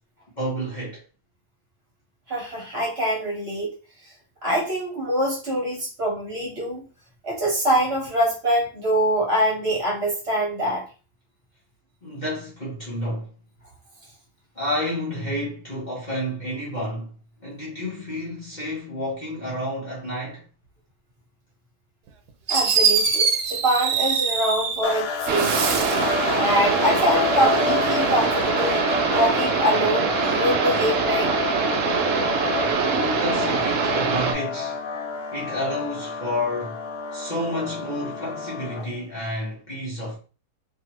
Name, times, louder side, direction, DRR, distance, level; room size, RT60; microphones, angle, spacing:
voice 1, 0.4-1.0 12.0-13.3 14.5-17.1 17.4-20.4 32.8-34.8 35.3-36.8 37.1-40.2, equal, 30° left, 1.1 m, -30 dB
voice 2, 2.3-3.7 4.0-4.1 4.4-6.8 7.2-10.8 22.5-25.9 26.4-28.8 29.1-31.3, right 1 dB, 45° right, 1.2 m, -24 dB
Fireworks, 22.1-22.2 22.5-24.9 25.3-26.1, right 6 dB, 85° right, 1.2 m, -23 dB
sound 1, 24.8-39.0, left 6 dB, 85° left, 1.1 m, -29 dB
sound 2, 25.3-34.3, right 6 dB, 65° right, 0.8 m, -23 dB
2.8 x 2.6 x 2.9 m
omnidirectional pair, 1.7 m